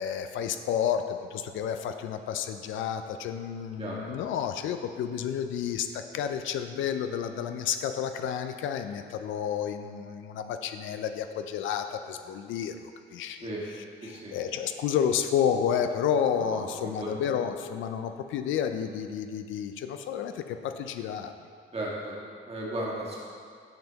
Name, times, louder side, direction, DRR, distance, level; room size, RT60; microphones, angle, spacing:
voice 1, 0.0-13.5 14.0-21.3, left 8 dB, 80° left, 8 dB, 0.4 m, -30 dB
voice 2, 14.0-14.3 16.4-17.1 21.7-23.2, right 1 dB, 30° right, -5 dB, 1.7 m, -35 dB
8.9 x 5.4 x 3.0 m, 2.2 s
cardioid pair, 90°, 20 cm